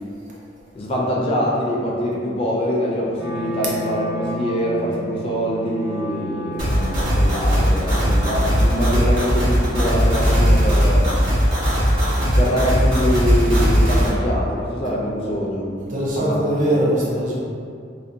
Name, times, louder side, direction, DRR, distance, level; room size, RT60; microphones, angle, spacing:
voice 1, 0.7-11.1 12.4-15.7 16.2-16.6, equal, 30° left, -3 dB, 0.3 m, -24 dB
Wind instrument woodwind instrument, 3.1-9.1, right 1 dB, 70° left, 0.6 m, -34 dB
sound 1, 6.6-14.1, equal, 90° right, 0.9 m, -18 dB
voice 2, 15.8-17.4, right 1 dB, 45° right, -5 dB, 0.5 m, -22 dB
2.5 x 2.0 x 2.6 m, 2.3 s
head